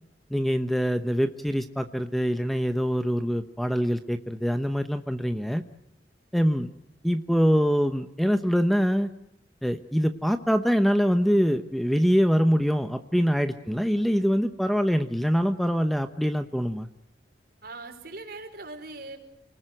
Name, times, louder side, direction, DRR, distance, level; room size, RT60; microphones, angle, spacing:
voice 1, 0.3-5.6 6.3-6.7 7.0-9.1 9.6-16.9, equal, ahead, 8 dB, 0.9 m, -24 dB
voice 2, 17.6-19.2, right 2 dB, 60° right, 5 dB, 4.7 m, -41 dB
29.0 x 20.0 x 7.9 m, 0.78 s
head